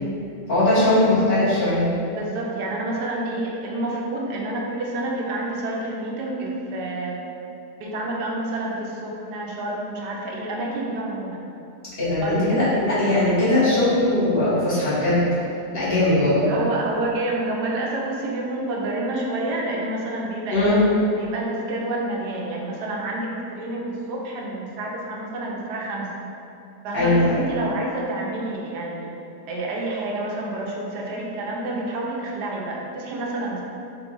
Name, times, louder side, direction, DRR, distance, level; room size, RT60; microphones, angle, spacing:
voice 1, 0.5-1.9 12.0-15.3 15.7-16.5 20.5-20.9 26.9-27.4, left 1 dB, 40° left, -12 dB, 1.2 m, -19 dB
voice 2, 2.1-7.2 7.8-11.5 12.2-12.5 16.5-20.8 21.2-26.1 26.8-29.1 29.5-33.6, right 2 dB, 90° right, -2 dB, 1.2 m, -28 dB
3.9 x 2.4 x 3.7 m, 2.7 s
omnidirectional pair, 1.7 m